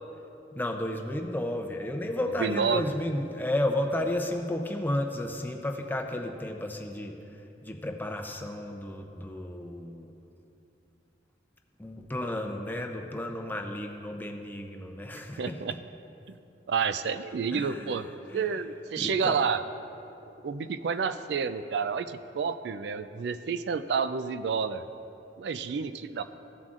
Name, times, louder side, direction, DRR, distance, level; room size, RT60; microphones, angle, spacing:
voice 1, 0.5-7.2 7.6-10.1 11.8-15.6 17.5-18.0 18.3-18.6 19.0-19.4, left 1 dB, 10° left, 3 dB, 0.6 m, -32 dB
voice 2, 2.4-2.9 15.4-15.7 16.7-18.1 18.3-19.6 20.4-24.8 25.4-26.2, right 6 dB, 70° right, 12 dB, 0.4 m, -29 dB
15.5 x 7.4 x 2.5 m, 2.8 s
head